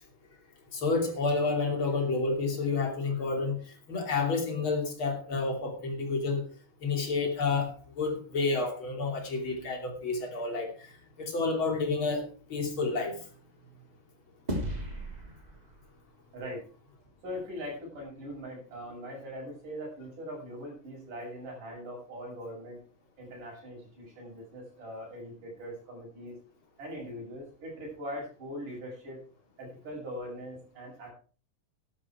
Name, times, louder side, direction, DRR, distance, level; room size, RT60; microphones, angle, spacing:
voice 1, 0.7-3.6 3.9-6.4 6.8-10.7 11.2-13.2, left 3 dB, 35° left, 4 dB, 3.5 m, -30 dB
sound 1, 14.5-17.1, right 1 dB, 10° right, 2.7 m, -37 dB
voice 2, 16.3-16.7 17.2-22.8 23.2-26.4 26.8-29.2 29.6-31.1, equal, 65° right, -2 dB, 8.6 m, -41 dB
12.0 x 12.0 x 4.6 m, 0.39 s
omnidirectional pair, 4.0 m